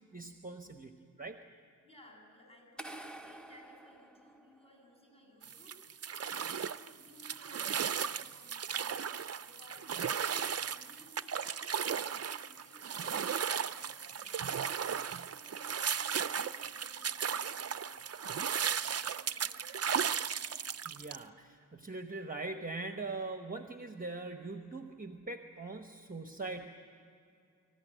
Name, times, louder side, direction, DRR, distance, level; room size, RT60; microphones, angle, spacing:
voice 1, 0.1-1.4 20.9-26.7, right 3 dB, 25° right, 6 dB, 1.0 m, -42 dB
voice 2, 1.8-14.3 14.7-20.0 20.5-20.7, left 1 dB, 20° left, -1 dB, 6.9 m, -60 dB
sound 1, 2.8-4.9, right 1 dB, 5° left, 0.9 m, -49 dB
sound 2, 5.4-21.2, right 7 dB, 50° right, 0.5 m, -36 dB
26.0 x 14.5 x 9.2 m, 2.5 s
wide cardioid pair, 105°, 32 cm